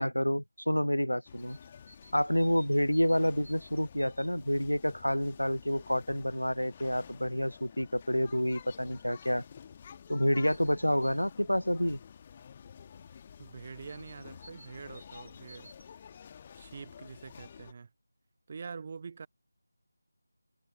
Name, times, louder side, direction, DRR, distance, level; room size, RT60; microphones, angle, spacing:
voice 1, 0.0-1.6 2.1-9.4 10.1-12.0, equal, 85° left, 0.4 m, -29 dB
sound 1, 1.3-17.7, left 7 dB, 20° left, 1.5 m, -51 dB
sound 2, 1.4-5.9, left 3 dB, 40° left, 5.2 m, -67 dB
sound 3, 1.4-4.3 8.8-8.9 9.1-9.2 10.5-11.3 13.9-15.9, right 1 dB, 60° right, 3.7 m, -57 dB
voice 2, 13.4-15.7 16.6-17.9 18.5-19.3, right 5 dB, 30° right, 0.7 m, -45 dB
figure-of-eight pair, 165°, 0 cm